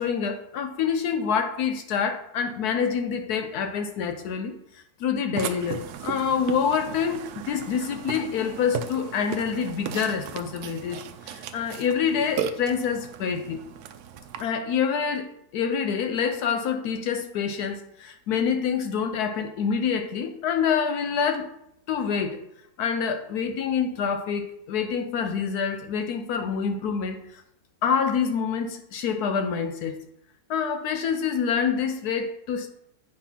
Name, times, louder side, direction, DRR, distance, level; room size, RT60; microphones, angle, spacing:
voice 1, 0.0-13.6 14.4-21.5 21.9-22.4 22.8-27.4 27.8-30.0 30.5-32.7, left 6 dB, 75° left, 7 dB, 0.9 m, -27 dB
Burping eructation, 5.4-14.4, right 8 dB, 75° right, 0.9 m, -36 dB
8.7 x 3.3 x 5.6 m, 0.79 s
omnidirectional pair, 2.1 m